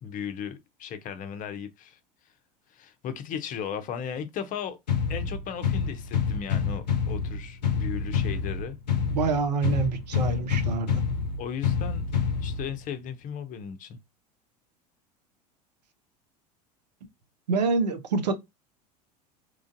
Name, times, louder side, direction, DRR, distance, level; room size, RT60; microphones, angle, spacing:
voice 1, 0.0-2.0 2.7-4.8 5.1-8.8 11.4-12.0 12.4-14.0, left 8 dB, 40° left, 0.6 m, -36 dB
sound 1, 4.9-12.9, left 7 dB, 85° left, 0.6 m, -28 dB
voice 2, 9.1-11.0 17.5-18.3, right 4 dB, 80° right, 0.7 m, -26 dB
3.1 x 2.5 x 2.5 m
hypercardioid pair, 80°, 21 cm